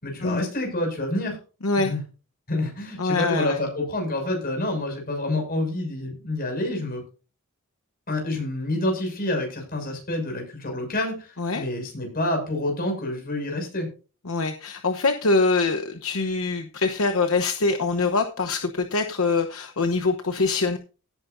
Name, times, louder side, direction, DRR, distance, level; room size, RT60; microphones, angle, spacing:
voice 1, 0.0-1.4 1.8-2.0 2.5-7.0 8.1-13.9, left 1 dB, 45° left, 2 dB, 6.6 m, -28 dB
voice 2, 3.0-3.6 11.4-11.6 14.2-20.8, left 3 dB, 70° left, 6 dB, 1.0 m, -24 dB
17.5 x 9.2 x 2.7 m, 0.34 s
head